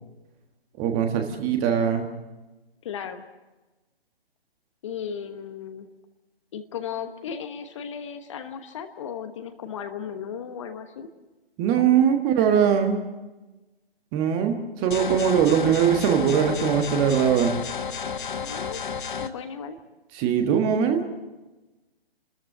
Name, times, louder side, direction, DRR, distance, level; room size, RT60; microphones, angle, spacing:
voice 1, 0.8-2.1 11.6-13.0 14.1-17.5 20.1-21.0, right 8 dB, 20° right, 5 dB, 1.5 m, -21 dB
voice 2, 2.8-3.2 4.8-5.9 6.5-11.1 18.4-18.8 19.2-19.8, left 7 dB, 30° left, 8 dB, 1.2 m, -35 dB
sound 1, 14.9-19.3, left 6 dB, 55° left, 1.2 m, -31 dB
29.5 x 13.5 x 7.7 m, 1.1 s
figure-of-eight pair, 145°, 30 cm